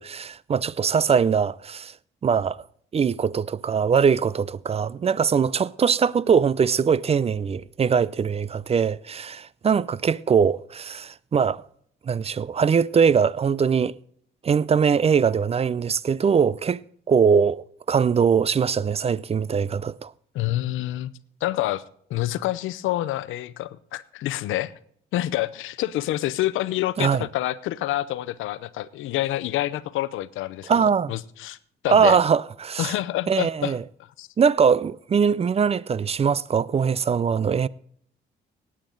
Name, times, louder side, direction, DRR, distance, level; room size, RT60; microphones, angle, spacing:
voice 1, 0.0-1.9 2.2-2.6 2.9-11.6 12.1-13.9 14.4-16.8 17.1-20.1 27.0-27.3 30.7-31.1 31.9-32.9 33.3-33.8 34.4-37.7, right 6 dB, 30° right, 0.4 m, -21 dB
voice 2, 20.3-21.1 21.4-21.8 22.1-24.7 25.1-30.7 31.1-31.6 31.8-32.2 32.8-33.7 34.2-34.3, left 15 dB, 85° left, 0.7 m, -27 dB
18.0 x 8.8 x 3.9 m
cardioid pair, 90°, 20 cm